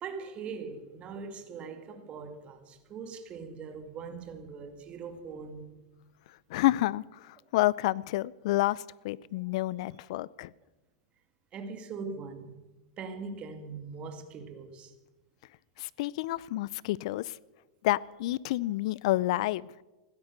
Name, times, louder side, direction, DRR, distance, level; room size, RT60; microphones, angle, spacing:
voice 1, 0.0-5.8 11.5-12.6 13.0-14.9, right 5 dB, 30° right, 2.3 m, -41 dB
voice 2, 6.5-10.5 15.8-17.4 17.8-19.7, left 17 dB, 65° left, 0.5 m, -29 dB
16.0 x 12.5 x 6.7 m
hypercardioid pair, 120°, 4 cm